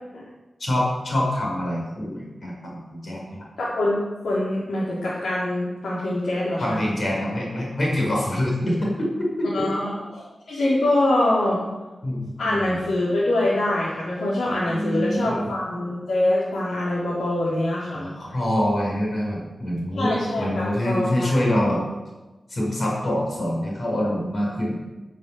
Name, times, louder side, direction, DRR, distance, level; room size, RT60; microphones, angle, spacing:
voice 1, 0.6-3.4 6.6-9.7 12.0-12.7 14.6-15.6 17.9-21.8 22.5-24.8, left 1 dB, 45° left, -3 dB, 5.3 m, -25 dB
voice 2, 3.6-6.8 9.5-9.9 10.5-11.6 12.4-18.1 20.0-21.3, left 1 dB, 85° left, -8 dB, 3.8 m, -24 dB
15.5 x 7.4 x 7.0 m, 1.1 s
wide cardioid pair, 175°, 0 cm